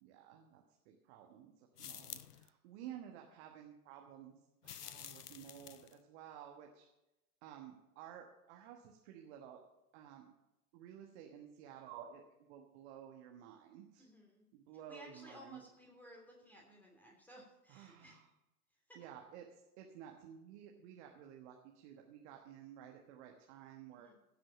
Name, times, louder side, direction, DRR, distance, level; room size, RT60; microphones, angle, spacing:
voice 1, 0.0-4.4 4.6-6.9 7.4-9.6 9.9-10.3 10.7-14.0 14.5-15.6 17.7-18.3 18.9-24.1, right 9 dB, 45° right, 2 dB, 1.4 m, -53 dB
sound 1, 1.8-2.5 4.6-6.0, left 9 dB, 80° left, 0.6 m, -50 dB
voice 2, 14.0-14.4 14.9-18.2 18.9-19.0 24.0-24.2, equal, 5° left, -1 dB, 3.0 m, -57 dB
15.5 x 6.1 x 7.0 m, 0.96 s
figure-of-eight pair, 90°, 46 cm